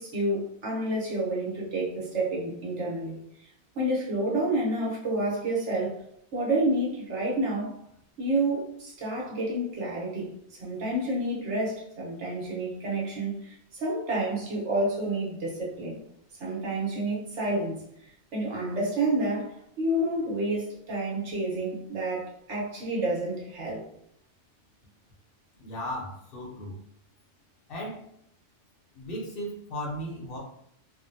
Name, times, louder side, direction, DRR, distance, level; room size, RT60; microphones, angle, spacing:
voice 1, 0.0-3.2 3.7-5.9 6.3-7.8 8.2-16.0 16.4-17.8 18.3-23.8, right 1 dB, 80° right, -4 dB, 1.3 m, -29 dB
voice 2, 25.6-26.7 27.7-28.0 28.9-30.4, equal, 55° left, -3 dB, 0.9 m, -36 dB
3.6 x 2.1 x 2.6 m, 0.72 s
omnidirectional pair, 1.2 m